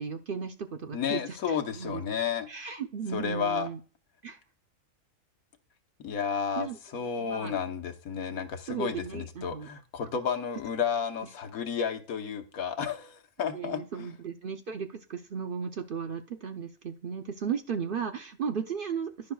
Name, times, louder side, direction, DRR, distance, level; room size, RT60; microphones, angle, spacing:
voice 1, 0.0-2.0 2.5-3.8 4.2-4.4 6.6-6.8 7.2-7.6 8.7-9.7 13.5-19.3, right 6 dB, 55° right, 6 dB, 0.6 m, -35 dB
voice 2, 0.9-2.5 3.1-3.7 6.0-14.1, left 7 dB, 90° left, 7 dB, 1.4 m, -32 dB
11.0 x 10.5 x 2.3 m, 0.37 s
omnidirectional pair, 1.5 m